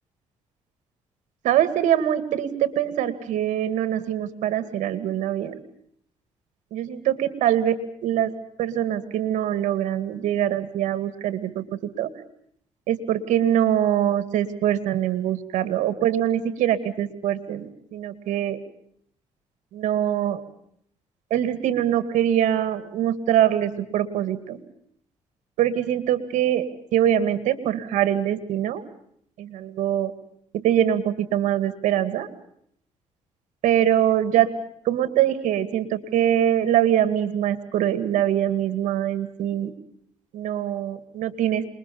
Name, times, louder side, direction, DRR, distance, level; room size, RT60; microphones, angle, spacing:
voice 1, 1.4-5.6 6.7-7.8 8.0-8.3 8.6-12.1 12.9-18.6 19.7-20.4 21.3-24.6 25.6-28.8 29.4-30.1 30.5-32.3 33.6-34.5 34.8-39.7 40.3-41.6, right 11 dB, 90° right, 12 dB, 2.3 m, -23 dB
28.0 x 22.0 x 7.1 m, 0.68 s
cardioid pair, 85°, 12 cm